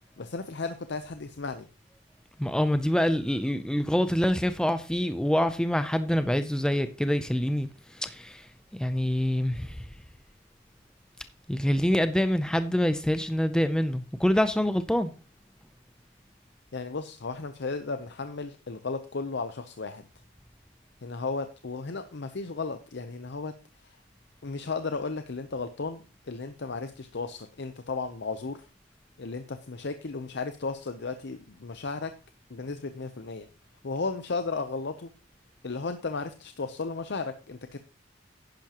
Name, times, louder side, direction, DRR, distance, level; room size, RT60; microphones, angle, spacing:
voice 1, 0.2-1.7 16.7-20.1 21.0-23.5 23.8-24.0 24.4-28.7 29.2-32.1 32.5-33.5 33.8-35.1 35.6-37.8, left 4 dB, 60° left, 0.7 m, -34 dB
voice 2, 2.4-10.0 11.5-15.1, equal, 5° left, 0.4 m, -26 dB
10.5 x 10.5 x 2.9 m
head